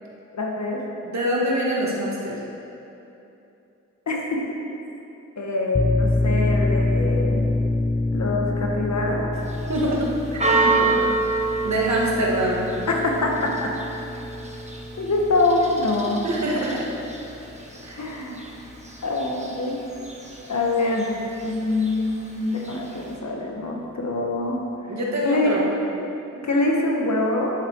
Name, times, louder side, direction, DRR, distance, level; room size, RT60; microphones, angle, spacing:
voice 1, 0.3-0.8 4.1-4.4 5.4-7.4 8.1-9.3 12.9-13.7 15.0-16.3 18.0-18.4 19.0-19.8 20.5-21.1 21.4-24.6 25.2-25.5 25.8-26.1 26.4-27.5, left 2 dB, 60° left, -1 dB, 1.7 m, -24 dB
voice 2, 1.0-2.4 9.7-11.0 11.2-12.7 16.2-16.9 17.8-18.0 24.9-25.7, right 1 dB, 60° right, -4 dB, 2.1 m, -25 dB
sound 1, 5.7-17.0, left 2 dB, 15° left, 0.4 m, -27 dB
Church bell, 9.3-23.2, right 3 dB, 20° right, 1.6 m, -29 dB
9.7 x 8.4 x 4.8 m, 2.8 s
cardioid pair, 55°, 31 cm